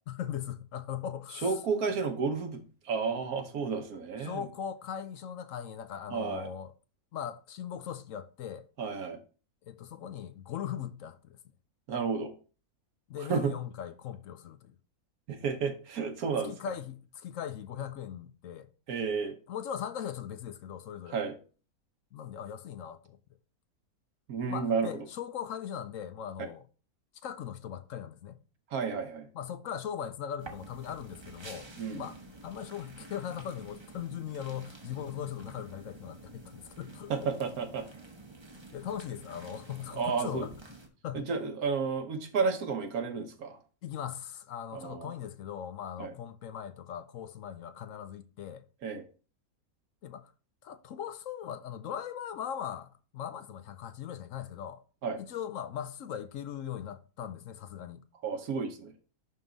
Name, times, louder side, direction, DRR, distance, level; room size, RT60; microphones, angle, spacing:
voice 1, 0.1-1.6 4.2-6.7 7.1-8.7 9.6-11.4 13.1-14.7 16.4-18.7 19.5-21.2 22.1-23.2 24.5-26.7 27.2-28.4 29.3-31.7 31.9-37.3 38.7-40.5 41.0-41.3 43.8-48.6 50.0-50.3 50.6-54.8 55.2-58.0, left 9 dB, 65° left, 0.9 m, -39 dB
voice 2, 1.4-4.4 6.1-6.5 8.8-9.2 11.9-12.3 13.3-13.5 15.3-16.5 18.9-19.4 21.1-21.4 24.3-24.9 28.7-29.3 31.8-32.1 37.1-37.9 39.9-40.5 41.1-43.6 44.7-45.1 46.0-46.1 48.8-49.0 55.0-55.2 58.2-58.9, right 5 dB, 80° right, 1.5 m, -31 dB
sound 1, 30.4-40.9, right 2 dB, 20° right, 0.9 m, -49 dB
11.0 x 3.7 x 4.0 m
omnidirectional pair, 1.5 m